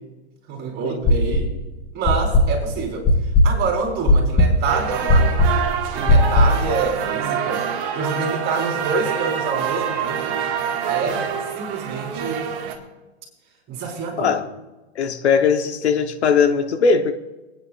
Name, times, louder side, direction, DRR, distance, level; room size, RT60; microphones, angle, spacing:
voice 1, 0.5-1.5 1.9-3.1 3.4-5.5 5.9-7.6 7.9-10.4 10.9-11.2 11.5-12.5 13.7-14.4, right 4 dB, 30° right, 4.7 m, -27 dB
sound 1, 1.0-1.6 2.0-6.7, left 1 dB, 25° left, 4.1 m, -17 dB
sound 2, 4.7-12.7, right 8 dB, 55° right, 2.2 m, -26 dB
voice 2, 14.9-17.1, left 6 dB, 85° left, 1.3 m, -19 dB
28.0 x 9.7 x 2.5 m
hypercardioid pair, 125°, 32 cm